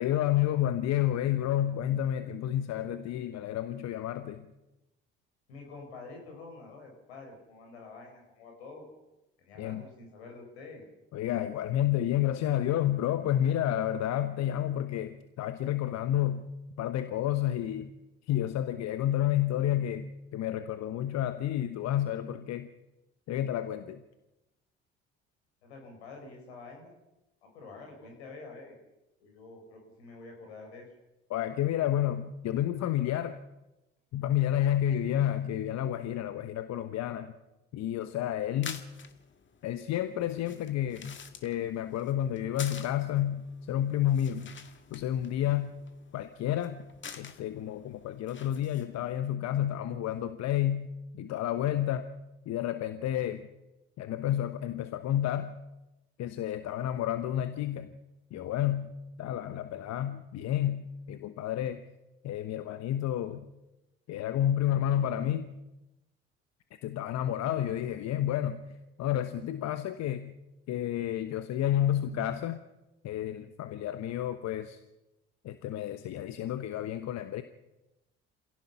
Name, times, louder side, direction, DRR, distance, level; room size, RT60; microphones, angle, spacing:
voice 1, 0.0-4.5 9.6-9.8 11.1-16.5 16.8-17.9 18.3-22.7 23.3-24.0 31.3-33.4 34.1-37.3 37.7-38.8 39.6-41.2 41.4-44.5 44.9-45.8 46.1-46.8 47.2-52.1 52.5-53.5 54.0-55.6 56.2-57.9 58.3-61.8 62.2-63.5 64.1-65.5 66.8-68.6 69.0-70.3 70.7-72.6 73.0-74.8 75.4-77.4, left 11 dB, 55° left, 10 dB, 1.1 m, -30 dB
voice 2, 5.5-8.9 9.4-10.8 25.6-27.0 27.4-28.8 29.2-30.9, left 3 dB, 75° left, 2 dB, 5.5 m, -47 dB
sound 1, 38.4-49.2, left 6 dB, 35° left, 2.0 m, -49 dB
27.5 x 17.0 x 5.7 m, 0.98 s
figure-of-eight pair, 50°, 32 cm